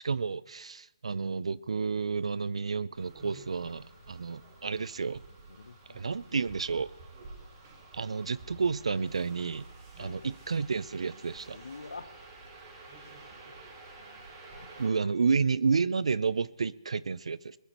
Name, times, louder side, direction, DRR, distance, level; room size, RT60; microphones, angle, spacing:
voice 1, 0.0-5.2 5.9-6.9 7.9-9.6 10.0-11.6 14.8-17.6, right 5 dB, 70° right, 19 dB, 0.5 m, -30 dB
sound 1, 2.9-14.9, right 3 dB, 30° right, 6.1 m, -50 dB
voice 2, 5.5-6.1 9.9-10.4 11.5-12.4 14.5-14.7 15.0-15.1, left 4 dB, 80° left, 12 dB, 0.8 m, -47 dB
21.5 x 14.5 x 3.0 m, 1.0 s
hypercardioid pair, 155°, 3 cm